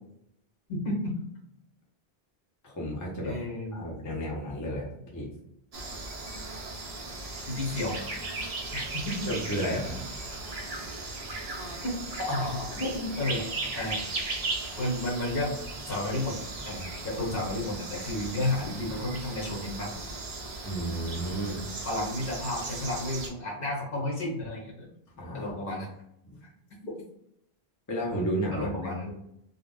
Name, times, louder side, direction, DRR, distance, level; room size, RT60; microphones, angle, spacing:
voice 1, 0.7-1.2 3.2-3.7 7.5-8.1 8.7-9.1 11.8-11.9 12.2-13.5 13.7-14.0 14.8-15.6 15.9-16.4 16.6-20.0 21.8-24.9 25.3-25.9 26.8-26.9 28.5-29.1, left 1 dB, 60° left, -2 dB, 1.1 m, -32 dB
voice 2, 2.6-3.4 3.7-5.3 9.3-10.1 13.8-13.9 20.6-21.6 25.2-25.5 26.2-26.4 27.9-28.7, equal, 20° left, -2 dB, 0.5 m, -32 dB
sound 1, 5.7-23.3, right 2 dB, 45° right, 0.5 m, -37 dB
2.3 x 2.0 x 3.6 m, 0.76 s
omnidirectional pair, 1.0 m